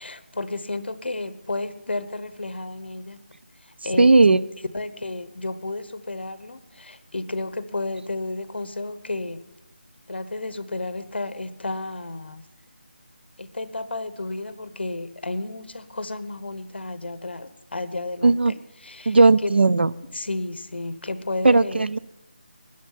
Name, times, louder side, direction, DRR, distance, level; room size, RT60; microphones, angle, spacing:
voice 1, 0.0-3.2 3.6-4.4 4.7-9.4 10.1-12.4 13.4-18.5 18.8-19.5 20.1-21.9, left 2 dB, 70° left, 13 dB, 1.1 m, -32 dB
voice 2, 4.0-4.4 18.2-18.5 19.1-19.9 21.4-22.0, right 3 dB, 70° right, 17 dB, 0.5 m, -16 dB
13.0 x 10.5 x 5.7 m, 0.95 s
figure-of-eight pair, 180°, 6 cm